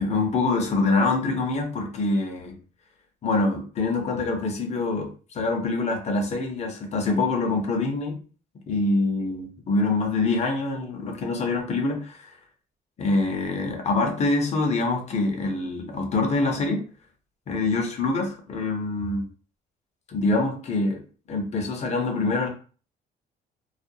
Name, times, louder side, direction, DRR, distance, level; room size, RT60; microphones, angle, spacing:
voice 1, 0.0-2.6 3.2-8.2 8.7-12.3 13.0-16.8 17.5-19.2 20.1-21.0 21.3-22.5, left 3 dB, 40° left, 2 dB, 0.8 m, -25 dB
2.4 x 2.2 x 2.7 m, 0.37 s
cardioid pair, 110°, 17 cm